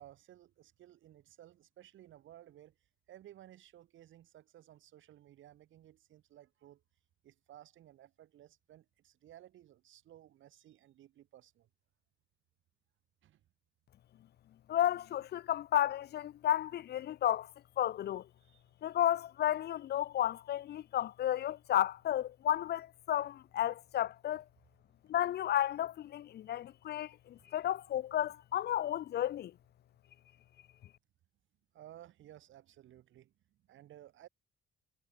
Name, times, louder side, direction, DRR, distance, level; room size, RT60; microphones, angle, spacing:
voice 1, 0.0-2.7 3.1-6.8 7.2-11.7 13.2-13.4 18.4-18.6 31.7-34.3, right 12 dB, 75° right, 2.1 m, -57 dB
voice 2, 14.7-18.3 18.8-24.4 25.1-29.5, left 12 dB, 55° left, 0.5 m, -33 dB
cardioid pair, 90°, 20 cm